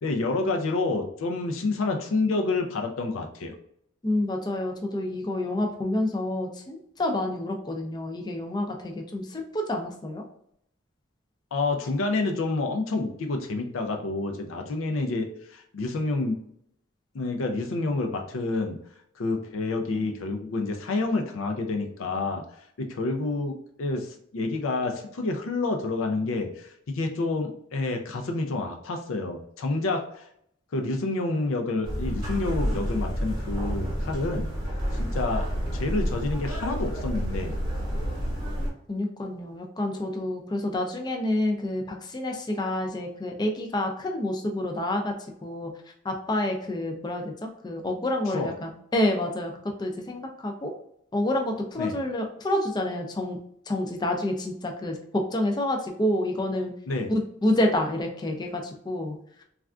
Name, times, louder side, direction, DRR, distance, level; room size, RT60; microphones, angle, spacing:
voice 1, 0.0-3.5 11.5-16.4 17.1-18.8 19.2-22.4 22.8-30.3 30.7-34.5 35.0-35.5 35.7-37.5 48.3-48.5 51.8-52.0 56.9-57.1, left 3 dB, 85° left, 4 dB, 0.4 m, -28 dB
voice 2, 4.0-10.2 19.9-20.0 38.9-45.1 45.4-45.7 46.0-50.7 51.1-53.4 53.7-56.7 57.1-59.1, left 1 dB, 20° left, 3 dB, 0.4 m, -28 dB
sound 1, 31.8-38.7, equal, 25° right, 0.9 m, -29 dB
3.3 x 2.4 x 2.3 m, 0.70 s
head